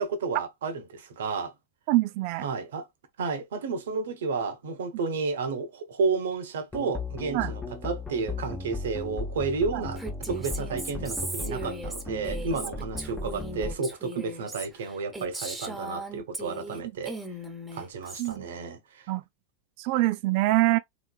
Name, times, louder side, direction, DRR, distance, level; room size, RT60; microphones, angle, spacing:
voice 1, 0.0-1.5 2.4-2.8 3.2-10.0 10.3-17.2 17.7-19.1, right 4 dB, 85° right, 1.0 m, -31 dB
voice 2, 1.9-2.5 7.3-7.5 9.7-9.8 16.8-16.9 18.2-18.5 19.1-19.2 19.8-20.8, right 18 dB, 55° right, 0.5 m, -25 dB
sound 1, 6.7-13.7, left 3 dB, 10° left, 1.0 m, -36 dB
Female speech woman speaking, 10.0-16.8 17.1-18.3, right 2 dB, 10° right, 1.1 m, -38 dB
3.3 x 3.1 x 2.4 m
supercardioid pair, 130°, 0 cm